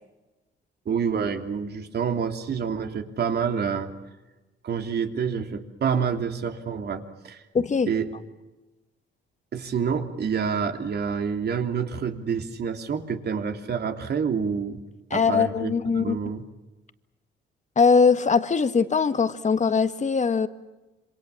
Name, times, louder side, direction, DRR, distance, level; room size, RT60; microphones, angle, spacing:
voice 1, 0.8-3.9 4.6-7.4 7.9-8.1 9.5-14.8 15.1-16.4, right 6 dB, 55° right, 5 dB, 3.2 m, -28 dB
voice 2, 7.5-7.9 15.1-16.2 17.8-20.5, left 5 dB, 35° left, 11 dB, 1.8 m, -21 dB
27.0 x 25.5 x 7.3 m, 1.1 s
cardioid pair, 90°, 20 cm